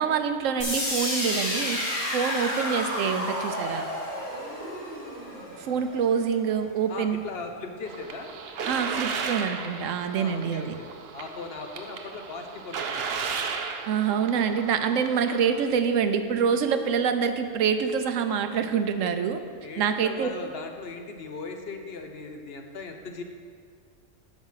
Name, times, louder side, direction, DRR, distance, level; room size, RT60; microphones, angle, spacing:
voice 1, 0.0-1.8 2.1-3.9 5.6-7.2 8.7-10.6 13.9-19.4 19.8-20.3, right 7 dB, 80° right, 8 dB, 1.0 m, -26 dB
sound 1, 0.6-6.5, equal, 70° left, 2.9 m, -31 dB
voice 2, 6.9-8.3 10.1-13.0 19.6-23.2, left 4 dB, 55° left, 4 dB, 0.9 m, -38 dB
sound 2, 7.8-15.7, right 5 dB, 60° right, 0.8 m, -35 dB
10.0 x 6.3 x 5.6 m, 2.1 s
omnidirectional pair, 1.3 m